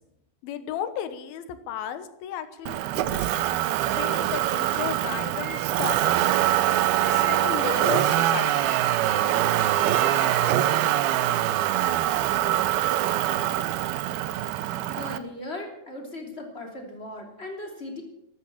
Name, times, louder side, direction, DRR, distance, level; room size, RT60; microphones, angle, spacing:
voice 1, 0.4-3.4 3.8-6.3 7.1-8.8, left 10 dB, 70° left, 11 dB, 2.9 m, -34 dB
Motor vehicle (road), 2.7-15.2, right 13 dB, 80° right, 2.5 m, -24 dB
sound 1, 5.2-5.9 6.9-7.4 8.3-8.9 9.6-10.5, right 6 dB, 60° right, 3.4 m, -38 dB
voice 2, 14.9-18.0, left 1 dB, 15° left, 1 dB, 2.9 m, -37 dB
14.0 x 13.0 x 7.3 m, 0.84 s
omnidirectional pair, 4.8 m